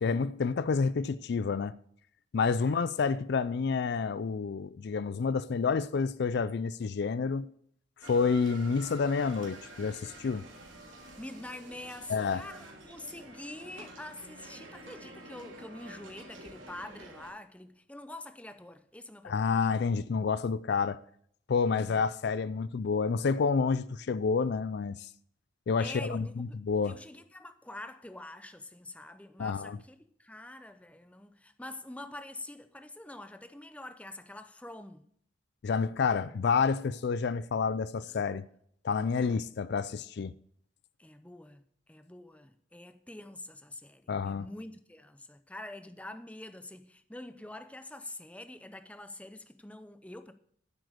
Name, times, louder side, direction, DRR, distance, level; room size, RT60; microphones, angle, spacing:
voice 1, 0.0-1.8 2.3-7.5 8.0-10.4 12.1-12.5 19.2-21.0 21.5-25.1 25.7-27.0 29.4-29.8 35.6-38.5 38.8-40.3 44.1-44.5, left 5 dB, 55° left, 0.4 m, -29 dB
sound 1, 8.0-17.3, right 2 dB, 75° right, 3.2 m, -49 dB
voice 2, 11.2-19.5 21.7-22.0 25.8-26.6 26.9-35.1 39.2-39.3 41.0-41.6 41.9-50.3, left 1 dB, 5° left, 0.6 m, -46 dB
9.9 x 7.8 x 6.4 m
head